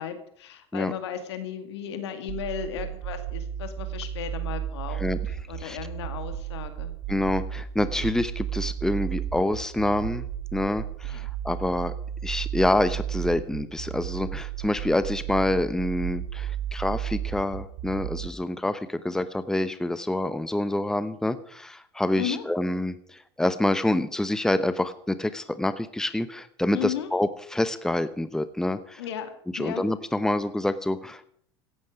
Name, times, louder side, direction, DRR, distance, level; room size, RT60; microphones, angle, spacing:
voice 1, 0.0-5.0 5.5-6.9 11.0-11.3 22.1-22.4 26.7-27.1 29.0-29.3 29.6-29.8, left 9 dB, 75° left, 8 dB, 2.2 m, -35 dB
sound 1, 2.3-18.3, right 11 dB, 65° right, 1.6 m, -33 dB
voice 2, 7.1-10.3 10.5-11.9 12.2-29.0 29.5-31.3, left 1 dB, 5° left, 13 dB, 1.0 m, -27 dB
16.5 x 12.0 x 5.0 m, 0.64 s
hypercardioid pair, 80°, 14 cm